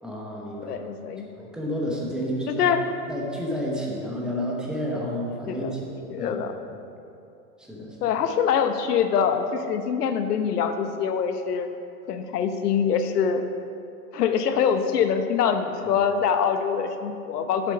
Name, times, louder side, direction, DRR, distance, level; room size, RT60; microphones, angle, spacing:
voice 1, 0.0-0.8 1.3-2.7 3.1-6.8 7.6-8.1 15.8-16.0, equal, ahead, -3 dB, 0.9 m, -31 dB
voice 2, 0.6-1.3 2.5-2.9 5.5-5.7 6.1-6.5 8.0-11.7 12.1-13.4 14.1-17.7, left 7 dB, 85° left, 8 dB, 0.9 m, -24 dB
8.1 x 7.1 x 5.3 m, 2.7 s
hypercardioid pair, 150°, 46 cm